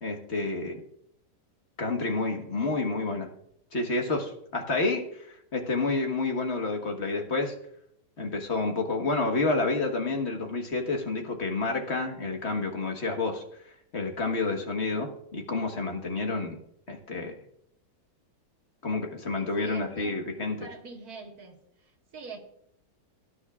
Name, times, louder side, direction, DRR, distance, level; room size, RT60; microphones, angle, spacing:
voice 1, 0.0-0.8 1.8-3.3 3.7-7.5 8.2-13.4 13.9-16.6 16.9-17.3 18.8-20.6, left 3 dB, 40° left, 3 dB, 1.6 m, -29 dB
voice 2, 19.3-20.2 20.6-21.6 22.1-22.4, right 4 dB, 60° right, 1 dB, 2.1 m, -44 dB
18.0 x 9.9 x 2.4 m, 0.71 s
omnidirectional pair, 1.8 m